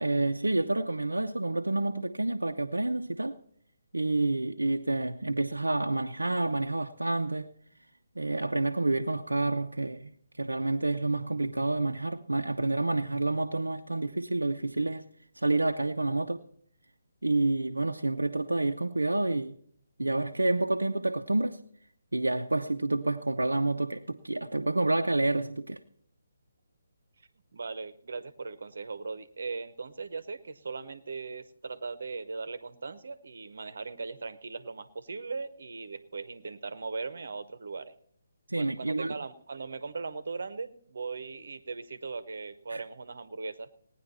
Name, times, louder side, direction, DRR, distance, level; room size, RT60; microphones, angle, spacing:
voice 1, 0.0-3.4 3.9-7.5 8.2-10.1 10.4-15.0 15.4-16.4 17.2-19.5 20.0-21.6 22.1-25.8 38.5-39.2 42.7-42.8, right 2 dB, 75° right, 0.6 m, -28 dB
voice 2, 27.5-37.9 38.5-43.7, right 4 dB, 55° right, 0.9 m, -39 dB
17.5 x 9.9 x 4.3 m
figure-of-eight pair, 140°, 0 cm